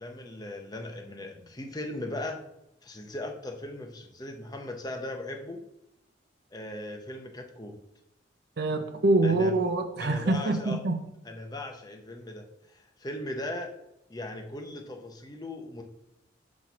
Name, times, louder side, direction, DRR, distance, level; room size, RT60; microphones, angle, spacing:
voice 1, 0.0-2.4 2.8-5.6 6.5-7.8 9.2-9.6 10.0-10.8 11.2-13.7 14.1-15.8, left 1 dB, 20° left, 3 dB, 0.8 m, -38 dB
voice 2, 8.6-10.9, right 2 dB, 55° right, 6 dB, 0.6 m, -25 dB
4.8 x 4.3 x 5.9 m, 0.83 s
head